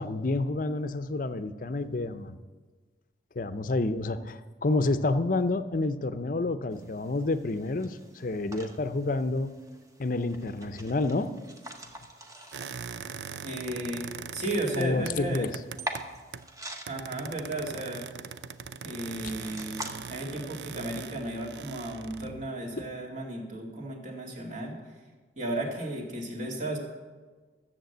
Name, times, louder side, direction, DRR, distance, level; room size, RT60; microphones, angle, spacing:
voice 1, 0.0-2.3 3.4-9.5 10.0-11.4 14.8-15.5 19.2-19.3 22.8-22.9, left 2 dB, 50° left, 12 dB, 0.6 m, -29 dB
sound 1, 6.7-19.9, right 1 dB, 20° right, 1.0 m, -45 dB
sound 2, 12.5-16.6 16.9-22.5, right 6 dB, 70° right, 0.5 m, -41 dB
voice 2, 13.4-14.1 14.3-15.5 16.9-18.0 18.8-24.7 25.4-26.8, right 1 dB, 40° right, -1 dB, 2.3 m, -34 dB
13.0 x 7.4 x 7.9 m, 1.4 s
head